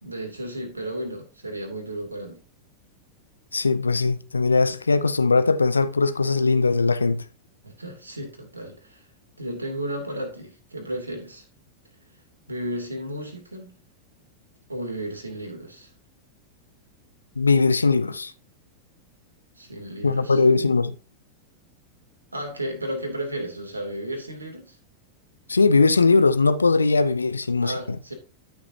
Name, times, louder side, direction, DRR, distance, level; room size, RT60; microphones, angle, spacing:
voice 1, 0.0-2.4 7.6-9.0 9.4-11.4 12.5-13.7 14.7-15.9 19.6-20.7 22.3-24.8 27.6-28.1, right 1 dB, 80° right, 2.9 m, -33 dB
voice 2, 3.5-7.2 17.4-18.3 20.0-20.9 25.5-28.0, left 4 dB, 75° left, 0.5 m, -20 dB
13.0 x 6.1 x 2.8 m
figure-of-eight pair, 90°, 0 cm